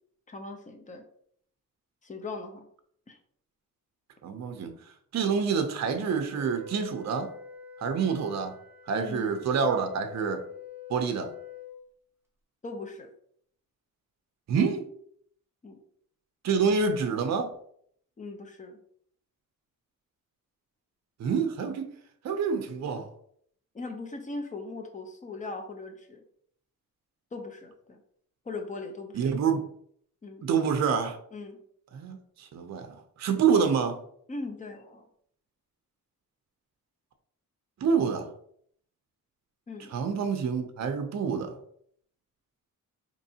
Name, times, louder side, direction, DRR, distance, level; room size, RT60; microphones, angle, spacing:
voice 1, 0.3-1.0 2.0-2.7 3.1-3.2 8.9-9.4 12.6-13.1 15.6-15.8 18.2-18.8 23.7-26.2 27.3-28.0 28.5-29.2 30.2-30.4 31.3-31.6 34.3-35.1 39.7-39.9, left 3 dB, 25° left, 4 dB, 0.6 m, -39 dB
voice 2, 4.2-4.7 5.1-7.3 7.8-8.5 8.9-10.4 10.9-11.3 14.5-14.9 16.4-17.5 21.2-22.0 22.2-23.1 29.1-29.7 30.4-31.2 31.9-34.0 37.8-38.3 39.9-41.6, right 6 dB, 55° right, 7 dB, 0.5 m, -27 dB
Wind instrument woodwind instrument, 6.3-11.8, left 5 dB, 10° right, 0.7 m, -46 dB
4.5 x 3.0 x 2.7 m, 0.64 s
wide cardioid pair, 160°, 33 cm